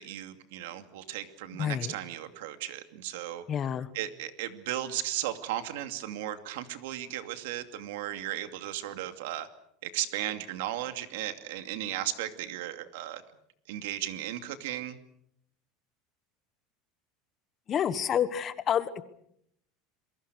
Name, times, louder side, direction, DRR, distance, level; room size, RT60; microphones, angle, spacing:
voice 1, 0.0-3.4 3.9-9.5 9.8-13.2 13.7-15.0, right 13 dB, 80° right, 9 dB, 2.5 m, -35 dB
voice 2, 1.6-1.9 3.5-3.9 17.7-19.0, left 9 dB, 25° left, 14 dB, 1.3 m, -28 dB
28.0 x 22.5 x 6.4 m, 0.72 s
supercardioid pair, 160°, 0 cm